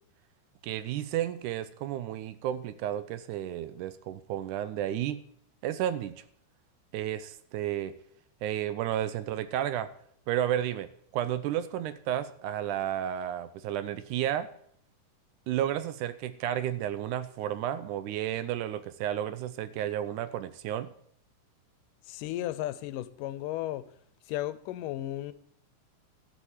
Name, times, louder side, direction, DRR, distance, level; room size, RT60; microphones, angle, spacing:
voice 1, 0.6-5.2 5.6-6.2 6.9-8.0 8.4-9.9 10.3-14.5 15.5-20.9, right 11 dB, 80° right, 2.0 m, -32 dB
voice 2, 22.0-23.9 24.3-25.3, left 14 dB, 85° left, 2.2 m, -34 dB
12.5 x 7.2 x 7.2 m
omnidirectional pair, 3.8 m